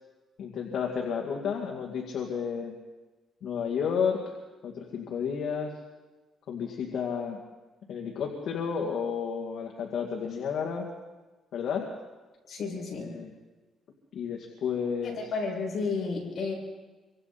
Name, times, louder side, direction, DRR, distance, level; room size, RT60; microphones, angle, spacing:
voice 1, 0.4-2.8 3.4-4.3 4.6-5.7 6.5-7.4 7.9-10.9 11.5-11.9 13.0-13.3 14.1-15.2, left 6 dB, 60° left, 0 dB, 2.3 m, -31 dB
voice 2, 12.5-13.2 15.0-16.5, left 4 dB, 45° left, -2 dB, 6.8 m, -32 dB
25.5 x 25.0 x 4.3 m, 1.2 s
cardioid pair, 155°, 0 cm